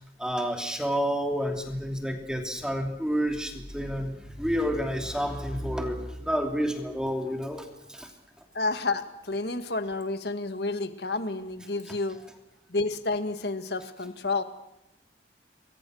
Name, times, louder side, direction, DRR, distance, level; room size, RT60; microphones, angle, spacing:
voice 1, 0.2-8.1, equal, 5° right, 4 dB, 2.9 m, -29 dB
voice 2, 8.5-12.2 12.7-14.4, left 3 dB, 60° left, 9 dB, 2.0 m, -30 dB
29.0 x 22.0 x 6.5 m, 0.88 s
head